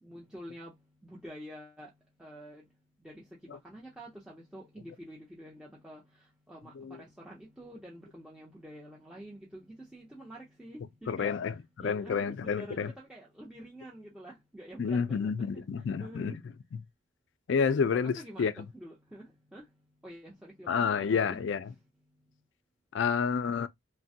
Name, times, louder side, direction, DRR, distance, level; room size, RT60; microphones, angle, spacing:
voice 1, 0.0-0.7 1.0-1.9 2.2-2.7 3.0-15.7 16.0-16.4 17.9-19.6 20.0-21.4, equal, 5° right, 0.5 m, -48 dB
voice 2, 11.1-11.5 11.8-12.9 14.8-16.4 17.5-18.5 20.7-21.6 22.9-23.7, left 6 dB, 60° left, 0.3 m, -29 dB
3.2 x 2.1 x 2.7 m
head